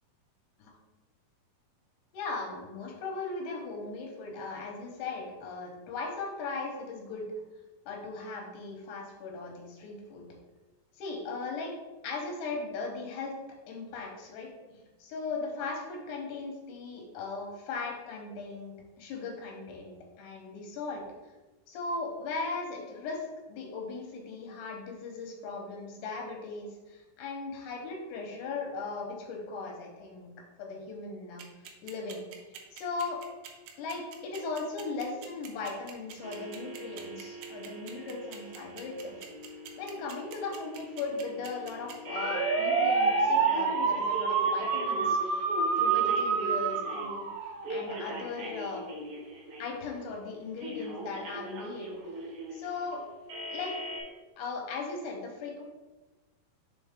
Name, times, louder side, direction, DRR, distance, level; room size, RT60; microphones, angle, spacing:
voice 1, 2.1-7.2 7.9-10.2 10.9-11.8 12.0-13.3 13.7-21.0 21.7-30.3 30.6-31.4 31.8-32.2 32.7-33.2 33.8-39.3 39.8-45.4 45.8-47.3 47.7-48.9 49.6-51.9 52.5-53.0 53.5-53.7 54.4-55.6, left 4 dB, 90° left, 1 dB, 3.2 m, -38 dB
sound 1, 31.4-47.9, right 5 dB, 90° right, 2.9 m, -28 dB
sound 2, 36.2-47.1 47.6-50.0 50.6-54.0, right 1 dB, 55° right, 1.6 m, -40 dB
6.9 x 3.9 x 3.6 m, 1.2 s
omnidirectional pair, 4.6 m